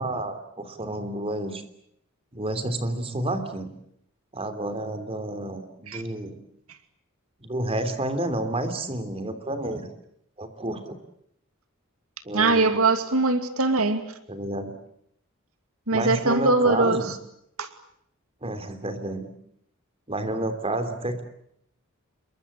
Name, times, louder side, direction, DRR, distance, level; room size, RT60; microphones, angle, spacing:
voice 1, 0.0-1.6 2.3-3.7 4.3-6.4 7.4-9.9 10.4-11.0 12.2-12.9 14.3-14.7 15.9-17.1 18.4-19.3 20.1-21.2, right 1 dB, 25° right, 9 dB, 3.2 m, -30 dB
voice 2, 12.3-14.0 15.9-17.0 17.6-17.7, right 3 dB, 80° right, 9 dB, 2.5 m, -21 dB
27.5 x 23.0 x 8.7 m, 0.73 s
head